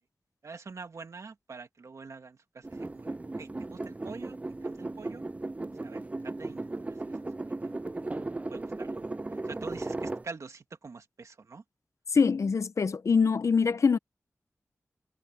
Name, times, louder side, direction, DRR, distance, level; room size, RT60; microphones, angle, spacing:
voice 1, 0.4-5.2 5.7-7.2 7.6-8.0 8.5-11.6, right 4 dB, 75° right, 2.1 m, -46 dB
sound 1, 2.6-10.2, right 2 dB, 25° right, 0.4 m, -36 dB
voice 2, 12.1-14.0, left 5 dB, 70° left, 0.8 m, -24 dB
wide cardioid pair, 60°, 5 cm